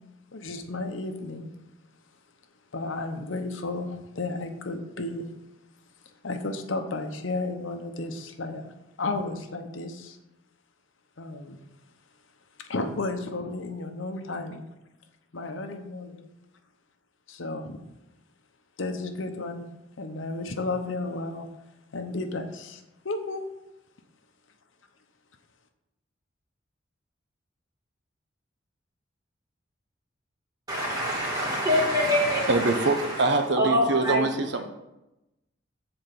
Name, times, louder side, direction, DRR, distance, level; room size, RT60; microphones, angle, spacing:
voice 1, 0.3-1.5 2.7-5.3 6.2-8.7 9.0-10.2 11.2-11.6 12.6-14.6 15.3-16.3 17.3-17.8 18.8-19.6 20.0-21.5 21.9-23.5, left 2 dB, 85° left, 6 dB, 0.9 m, -33 dB
voice 2, 30.7-33.3 33.6-34.2, equal, 20° right, -4 dB, 2.4 m, -25 dB
voice 3, 32.5-34.7, right 3 dB, 65° right, 6 dB, 0.8 m, -24 dB
7.9 x 4.3 x 6.7 m, 0.93 s
head